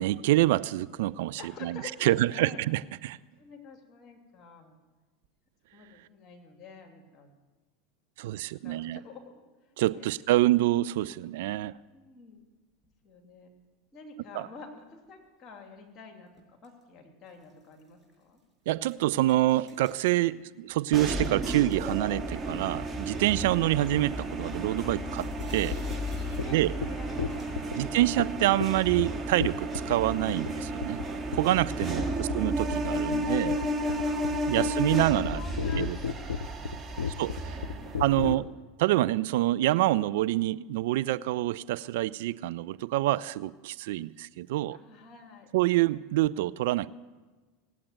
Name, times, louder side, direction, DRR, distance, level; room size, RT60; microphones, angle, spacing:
voice 1, 0.0-3.2 8.2-9.0 9.8-11.7 14.3-14.5 18.7-25.8 26.5-26.7 27.8-31.0 31.3-33.6 34.5-35.4 35.8-36.0 37.2-37.3 38.0-38.5 38.8-44.8 45.5-46.9, right 15 dB, 65° right, 17 dB, 0.4 m, -26 dB
voice 2, 1.4-2.6 3.1-4.8 5.7-7.3 8.2-9.3 9.7-10.1 11.9-12.4 13.0-13.5 13.9-18.4 20.3-20.5 24.8-25.0 26.0-28.0 31.8-32.4 32.7-32.8 33.1-34.7 35.3-35.9 36.6-37.1 37.4-38.3 44.7-45.5, left 3 dB, 40° left, 3 dB, 2.8 m, -48 dB
sound 1, 12.8-13.1 16.4-16.8 17.3-18.4 18.9-20.2 21.2-22.3 22.7-22.8 24.5-26.7 27.3-27.7, right 2 dB, ahead, 5.8 m, -55 dB
sound 2, 20.9-38.3, right 1 dB, 20° right, 1.9 m, -33 dB
sound 3, 25.4-25.5 25.7-26.0 26.4-26.5 26.8-26.9 27.2-27.8 28.2-28.3 28.6-28.7 29.0-29.1 29.4-30.0 30.3-30.5 30.8-31.1 31.3-31.6 31.8-32.0 32.3-38.4, left 6 dB, 80° left, 0.5 m, -33 dB
18.0 x 8.6 x 9.2 m, 1.3 s
hypercardioid pair, 85°, 0 cm